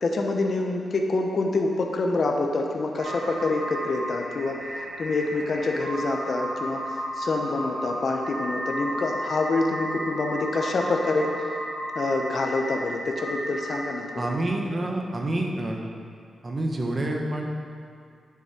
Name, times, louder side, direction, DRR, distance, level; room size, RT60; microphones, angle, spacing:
voice 1, 0.0-4.6 5.0-6.8 7.2-11.3 11.9-14.3, left 3 dB, 50° left, 2 dB, 1.0 m, -26 dB
sound 1, 3.0-13.9, right 1 dB, 70° right, 2.3 m, -33 dB
voice 2, 14.2-15.8 16.4-17.4, right 1 dB, 30° right, 1 dB, 1.3 m, -27 dB
10.5 x 7.4 x 4.5 m, 2.2 s
cardioid pair, 110°, 0 cm